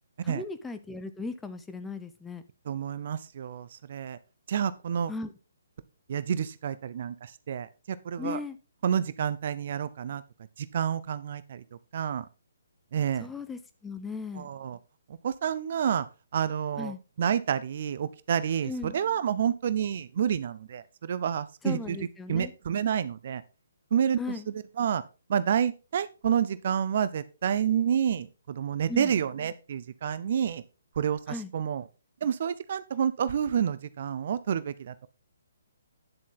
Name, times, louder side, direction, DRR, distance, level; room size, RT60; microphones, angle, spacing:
voice 1, 0.2-2.4 5.1-5.3 8.2-8.6 13.2-14.5 16.8-17.0 18.6-19.0 21.6-22.5 24.2-24.5 28.9-29.1 31.3-31.5, left 3 dB, 5° left, 9 dB, 0.8 m, -37 dB
voice 2, 2.7-4.2 4.5-5.1 6.1-8.4 8.8-10.2 10.6-11.6 11.9-12.2 12.9-13.3 14.4-14.8 15.2-16.1 16.3-22.0 22.3-23.4 23.9-24.2 24.8-25.0 25.3-30.6 31.0-31.8 32.2-35.1, right 8 dB, 45° right, 15 dB, 0.7 m, -29 dB
9.9 x 7.4 x 4.0 m, 0.32 s
figure-of-eight pair, 135°, 0 cm